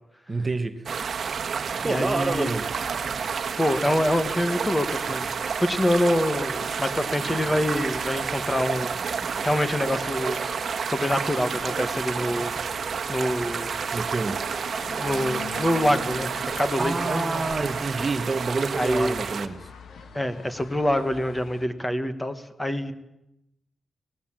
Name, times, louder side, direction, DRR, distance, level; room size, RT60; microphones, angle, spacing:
voice 1, 0.3-0.8 1.8-2.7 13.9-14.4 16.8-19.7, right 3 dB, 25° right, 1.1 m, -28 dB
sound 1, 0.9-19.5, right 6 dB, 50° right, 1.4 m, -30 dB
voice 2, 1.8-2.5 3.6-9.1 9.4-10.4 10.9-12.5 13.1-13.8 14.9-17.4 18.7-19.2 20.1-22.9, left 1 dB, 10° left, 1.5 m, -26 dB
sound 2, 3.2-21.7, left 5 dB, 70° left, 1.9 m, -44 dB
24.0 x 19.0 x 7.5 m
wide cardioid pair, 170°, 0 cm